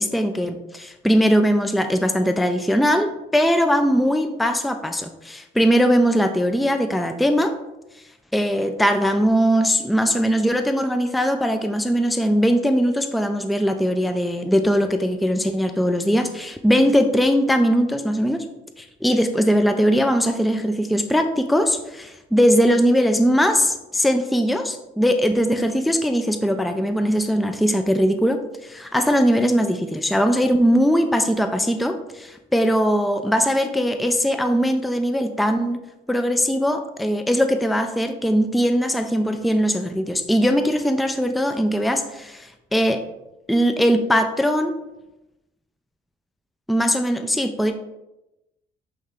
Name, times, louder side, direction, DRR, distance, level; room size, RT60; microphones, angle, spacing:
voice 1, 0.0-7.5 8.3-18.5 18.8-35.8 36.1-43.0 43.5-44.8 46.7-47.7, equal, ahead, 7 dB, 0.5 m, -20 dB
8.6 x 3.2 x 3.7 m, 0.94 s
cardioid pair, 90°, 20 cm